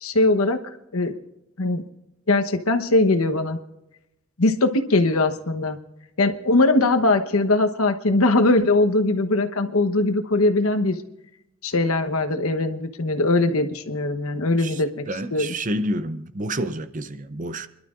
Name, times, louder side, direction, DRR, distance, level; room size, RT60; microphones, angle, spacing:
voice 1, 0.0-0.6 0.9-1.1 1.6-1.8 2.3-3.6 4.4-5.8 6.2-11.0 11.6-15.0 15.3-15.5, left 2 dB, 85° left, 1.0 m, -21 dB
voice 2, 14.6-17.7, right 1 dB, 40° right, 0.6 m, -29 dB
27.5 x 12.0 x 2.5 m
head